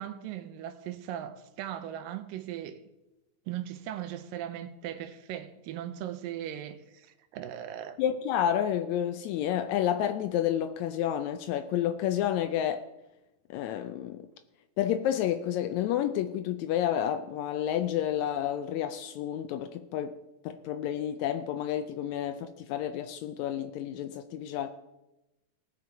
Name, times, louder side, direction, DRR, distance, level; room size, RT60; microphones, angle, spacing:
voice 1, 0.0-2.8 3.5-8.0, right 11 dB, 90° right, 2.5 m, -38 dB
voice 2, 8.0-12.9 13.5-14.3 14.8-20.2 20.4-24.7, left 10 dB, 90° left, 1.6 m, -30 dB
18.5 x 6.8 x 4.7 m
omnidirectional pair, 3.9 m